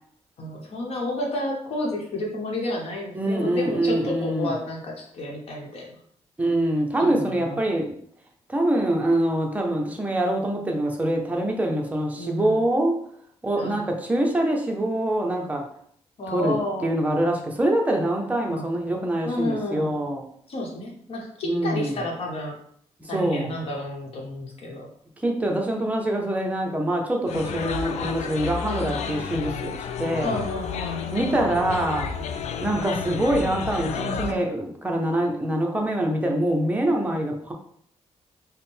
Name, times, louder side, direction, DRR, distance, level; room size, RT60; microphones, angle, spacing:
voice 1, 0.4-6.0 7.0-7.6 12.1-12.6 13.6-13.8 16.2-16.9 18.5-18.8 19.2-20.0 20.5-22.6 23.1-24.9 28.7-28.9 30.2-31.0 33.8-34.5, left 1 dB, 60° left, 0 dB, 1.0 m, -31 dB
voice 2, 3.1-4.6 6.4-7.9 8.5-13.0 13.4-15.6 16.3-16.6 16.8-20.2 21.4-22.0 23.0-23.5 25.2-30.4 31.1-32.1 32.6-37.5, right 1 dB, 15° right, 1 dB, 0.6 m, -24 dB
sound 1, 27.3-34.3, left 6 dB, 75° left, 0.4 m, -31 dB
3.6 x 2.1 x 4.2 m, 0.66 s
wide cardioid pair, 150°, 12 cm